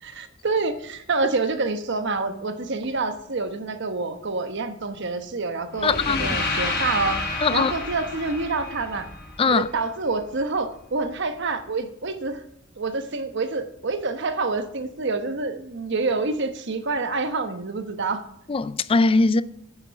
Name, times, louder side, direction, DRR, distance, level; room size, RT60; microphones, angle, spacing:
voice 1, 0.0-9.1 9.5-12.4 12.8-18.2, right 3 dB, 60° right, 1.1 m, -27 dB
sound 1, 5.8-9.8, left 3 dB, 55° left, 4.8 m, -29 dB
voice 2, 5.8-6.3 7.4-7.7 9.4-9.7 18.5-19.4, left 3 dB, 25° left, 0.4 m, -20 dB
9.9 x 6.9 x 5.8 m
head